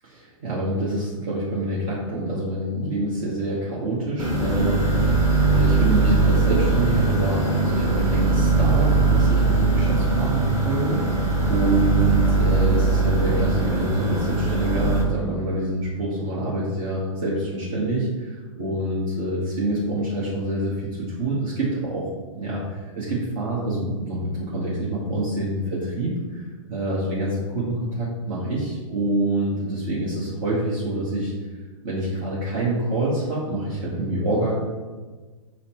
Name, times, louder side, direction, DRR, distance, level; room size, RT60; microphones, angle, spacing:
voice 1, 0.0-11.0 11.5-20.9 21.2-22.1 22.4-31.3 31.8-34.6, right 1 dB, 50° right, -7 dB, 1.1 m, -26 dB
sound 1, 4.2-15.0, right 3 dB, 20° right, 1.0 m, -20 dB
5.5 x 2.1 x 4.4 m, 1.3 s
figure-of-eight pair, 115°, 17 cm